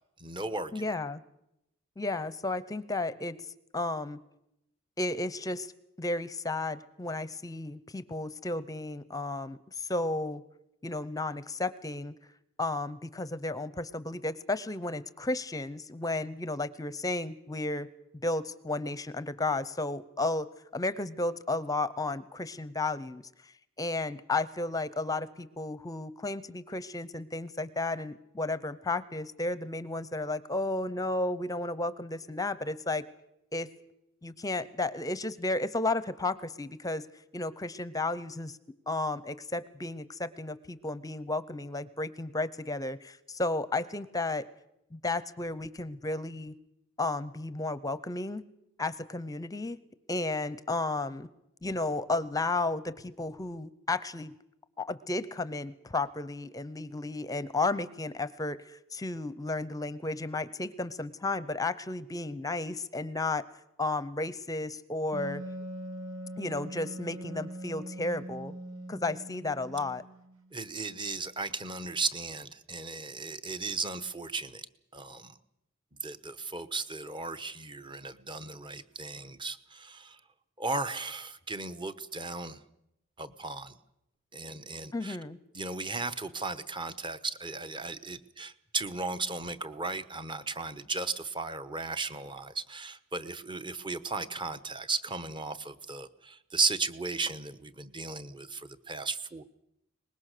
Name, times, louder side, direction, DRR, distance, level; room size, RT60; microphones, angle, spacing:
voice 1, 0.2-0.8 70.5-74.7 74.9-75.3 76.0-80.2 80.6-82.6 83.2-83.7 84.3-85.2 85.5-99.4, right 3 dB, 25° right, 11 dB, 1.0 m, -35 dB
voice 2, 0.7-1.2 2.0-3.4 3.7-4.2 5.0-5.7 6.0-10.4 10.8-12.1 12.6-17.9 18.2-20.5 20.7-23.2 23.8-33.0 33.5-33.7 34.2-37.0 37.3-38.6 38.9-44.4 44.9-46.5 47.0-48.4 48.8-49.8 50.1-51.3 51.6-54.3 54.8-63.4 63.8-65.4 66.4-68.5 68.9-70.0 84.9-85.4, left 2 dB, 15° left, 16 dB, 0.7 m, -33 dB
Wind instrument woodwind instrument, 65.1-70.5, right 1 dB, 80° right, 2.5 m, -42 dB
23.5 x 20.5 x 6.7 m, 0.82 s
head